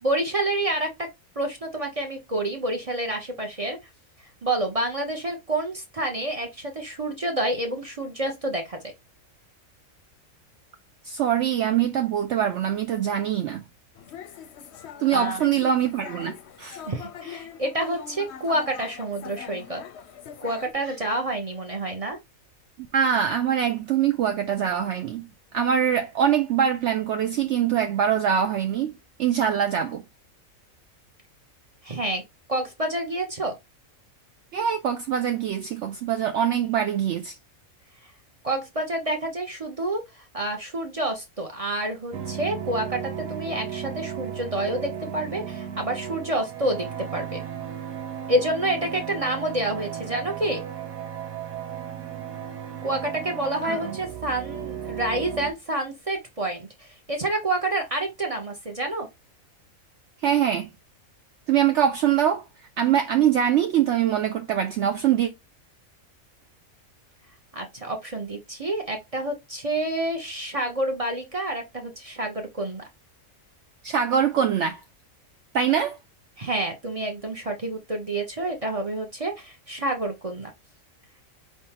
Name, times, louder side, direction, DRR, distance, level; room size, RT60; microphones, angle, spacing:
voice 1, 0.0-1.1 1.4-3.8 4.4-8.8 15.1-15.4 16.9-19.8 20.4-22.2 31.8-32.2 32.5-33.5 38.4-46.9 47.1-47.4 48.3-50.6 52.8-59.1 67.5-72.8 76.4-80.5, right 1 dB, 35° right, 0.6 m, -28 dB
voice 2, 11.0-13.6 15.0-16.3 16.6-16.8 22.9-25.3 25.5-28.9 29.2-30.0 34.5-37.3 53.6-54.0 60.2-60.7 61.5-62.4 62.8-65.3 73.8-74.8 75.5-76.0, right 9 dB, 65° right, 0.8 m, -23 dB
sound 1, 14.0-20.7, left 8 dB, 60° left, 0.8 m, -42 dB
sound 2, 42.1-55.5, right 9 dB, 90° right, 1.3 m, -35 dB
4.3 x 3.5 x 2.8 m
omnidirectional pair, 1.4 m